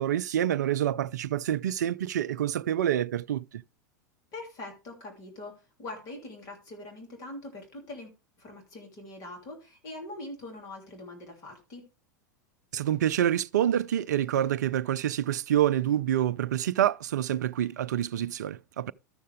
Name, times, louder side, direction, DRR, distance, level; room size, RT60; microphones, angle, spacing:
voice 1, 0.0-3.6 12.7-18.9, right 11 dB, 65° right, 0.4 m, -27 dB
voice 2, 4.3-8.1 8.4-11.8, left 2 dB, 40° left, 3.1 m, -43 dB
13.0 x 6.5 x 3.3 m
figure-of-eight pair, 90°, 10 cm